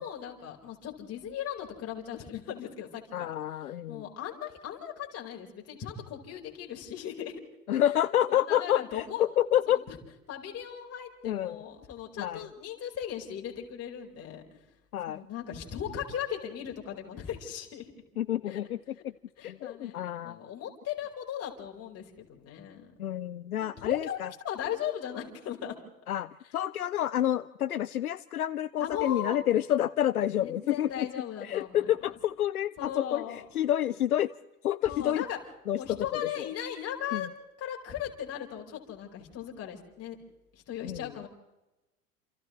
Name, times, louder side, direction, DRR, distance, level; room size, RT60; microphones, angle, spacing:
voice 1, 0.0-3.4 3.9-7.4 7.8-7.9 8.3-9.2 9.7-10.0 10.3-14.6 15.1-17.9 18.4-18.7 19.4-22.9 23.6-24.2 24.4-25.8 28.8-29.4 30.4-32.1 32.8-33.4 34.9-35.4 35.8-37.3 37.6-40.2 40.5-41.3, left 9 dB, 35° left, 0 dB, 4.8 m, -38 dB
voice 2, 3.1-4.1 7.7-9.8 11.2-11.6 12.2-12.4 14.9-15.2 18.2-18.8 19.0-19.1 19.4-20.4 23.0-24.3 26.1-31.1 31.4-34.3 34.6-35.2 35.7-36.1 36.4-36.5 37.1-37.3 40.8-41.1, left 11 dB, 75° left, 16 dB, 0.7 m, -29 dB
29.0 x 28.0 x 3.2 m, 1.0 s
figure-of-eight pair, 85°, 43 cm